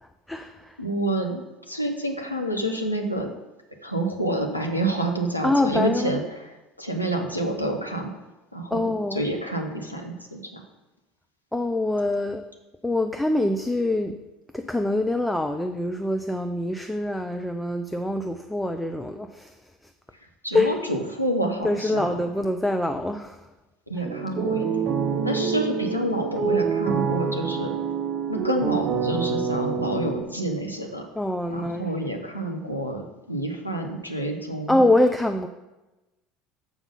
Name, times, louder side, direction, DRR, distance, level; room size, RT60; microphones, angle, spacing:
voice 1, 0.3-0.8 5.4-6.2 8.7-9.2 11.5-12.4 12.8-14.2 14.5-19.5 20.5-20.7 21.6-23.4 31.2-31.9 34.7-35.5, left 1 dB, 5° left, 7 dB, 0.5 m, -24 dB
voice 2, 0.8-3.3 3.8-8.1 8.5-10.6 20.4-22.3 23.9-24.8 25.2-27.7 28.3-31.1 31.5-34.8, right 1 dB, 90° left, 1 dB, 0.9 m, -28 dB
sound 1, 24.0-30.2, right 6 dB, 40° right, 1.0 m, -26 dB
7.1 x 5.4 x 5.4 m, 1.1 s
figure-of-eight pair, 65°, 0 cm